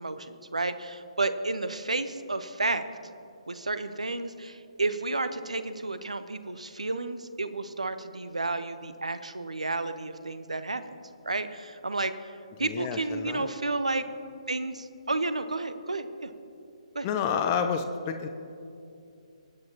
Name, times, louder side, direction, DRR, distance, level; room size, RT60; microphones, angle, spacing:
voice 1, 0.0-2.8 3.5-11.0 11.2-12.1 12.6-14.0 14.5-16.3 16.9-17.1, right 2 dB, 75° right, 12 dB, 0.8 m, -31 dB
voice 2, 12.6-13.5 17.0-18.3, left 7 dB, 25° left, 7 dB, 0.5 m, -29 dB
21.0 x 9.0 x 2.9 m, 2.6 s
figure-of-eight pair, 135°, 4 cm